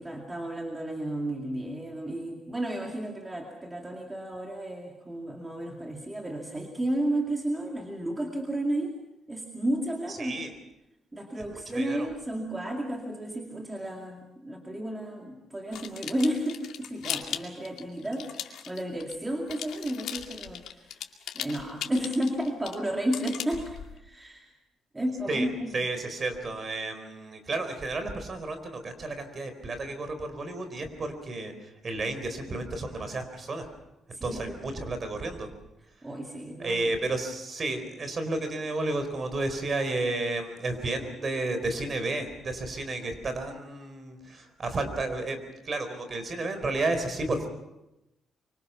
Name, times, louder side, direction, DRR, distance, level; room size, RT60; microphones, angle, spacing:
voice 1, 0.0-8.9 9.3-10.4 11.1-21.0 21.3-24.5 24.9-25.7 34.1-34.6 36.0-36.9, right 1 dB, 15° right, 1 dB, 2.3 m, -32 dB
voice 2, 10.1-10.5 11.5-12.1 25.3-25.5 25.7-33.7 34.2-35.5 36.6-47.5, right 2 dB, 35° right, 8 dB, 4.1 m, -32 dB
sound 1, 15.7-19.2 19.5-24.0, left 10 dB, 80° left, 2.2 m, -38 dB
25.0 x 24.5 x 5.7 m, 0.91 s
cardioid pair, 140°, 0 cm